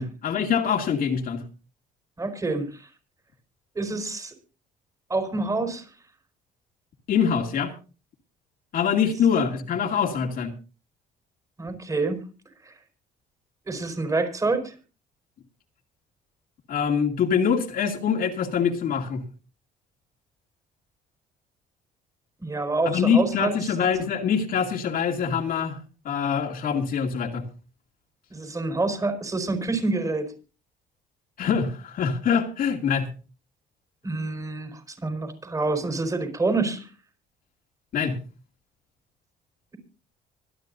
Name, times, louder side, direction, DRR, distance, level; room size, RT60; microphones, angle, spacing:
voice 1, 0.0-1.4 7.1-7.7 8.7-10.5 16.7-19.2 22.9-25.8 26.0-27.4 31.4-33.1 37.9-38.2, left 7 dB, 55° left, 2.4 m, -24 dB
voice 2, 2.2-2.9 3.7-4.3 5.1-5.9 11.6-12.2 12.6-12.7 13.7-14.7 22.4-23.6 28.3-30.3 34.0-36.9, right 3 dB, 20° right, 4.6 m, -27 dB
25.5 x 10.5 x 2.7 m
cardioid pair, 110°, 17 cm